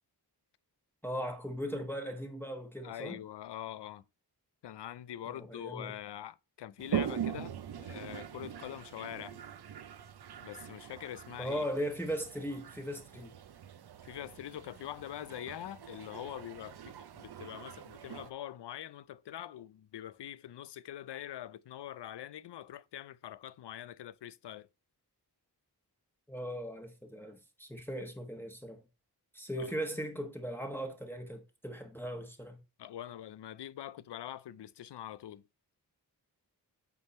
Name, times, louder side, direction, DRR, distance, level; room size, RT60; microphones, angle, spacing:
voice 1, 1.0-3.2 5.3-5.9 11.4-13.3 26.3-28.8 29.3-32.6, equal, 5° left, 1.1 m, -38 dB
voice 2, 2.8-4.0 4.6-9.4 10.4-11.7 14.0-24.7 29.6-29.7 32.8-35.4, left 11 dB, 80° left, 0.5 m, -44 dB
Toilet flush, 6.8-18.3, right 9 dB, 70° right, 0.6 m, -42 dB
8.3 x 3.6 x 4.1 m
wide cardioid pair, 90°, 40 cm